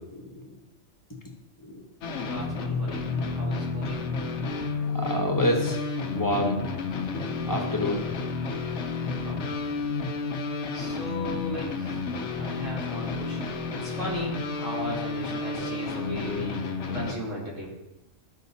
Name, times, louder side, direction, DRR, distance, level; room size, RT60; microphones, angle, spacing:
voice 1, 0.1-0.4 1.6-1.8 4.9-5.8 6.1-6.6 7.5-8.0 15.6-16.0, left 1 dB, 15° left, 1 dB, 1.1 m, -28 dB
sound 1, 2.0-17.1, left 4 dB, 60° left, 1.1 m, -31 dB
voice 2, 2.1-4.0 9.2-9.4 10.7-12.1 12.4-16.6 16.9-17.7, left 1 dB, 60° right, -4 dB, 3.1 m, -37 dB
13.0 x 5.8 x 4.1 m, 0.97 s
omnidirectional pair, 1.5 m